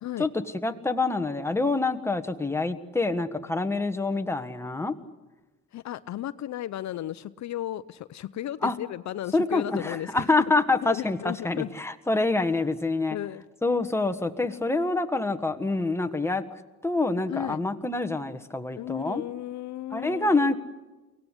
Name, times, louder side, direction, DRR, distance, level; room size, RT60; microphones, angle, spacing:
voice 1, 0.2-4.9 8.6-8.7 9.3-13.2 13.6-16.4 16.8-19.2 19.9-20.5, left 3 dB, 10° left, 7 dB, 1.6 m, -26 dB
voice 2, 5.7-10.3 10.8-11.7 13.1-13.4 17.3-17.6 18.8-20.5, left 12 dB, 65° left, 15 dB, 0.7 m, -34 dB
23.5 x 17.5 x 10.0 m, 1.2 s
cardioid pair, 90°, 30 cm